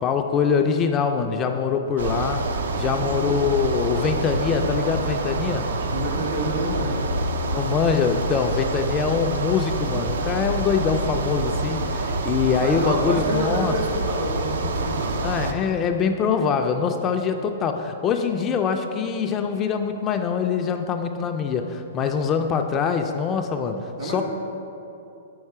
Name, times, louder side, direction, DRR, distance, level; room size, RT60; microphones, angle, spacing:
voice 1, 0.0-2.5 2.8-5.7 7.5-13.7 15.2-24.2, left 6 dB, 25° left, 5 dB, 0.3 m, -24 dB
sound 1, 2.0-15.5, right 2 dB, 80° right, 0.5 m, -27 dB
voice 2, 2.9-3.5 5.8-7.1 12.6-15.2 24.0-24.2, right 1 dB, 60° right, -1 dB, 1.5 m, -29 dB
5.5 x 5.4 x 4.7 m, 2.8 s
hypercardioid pair, 145°, 0 cm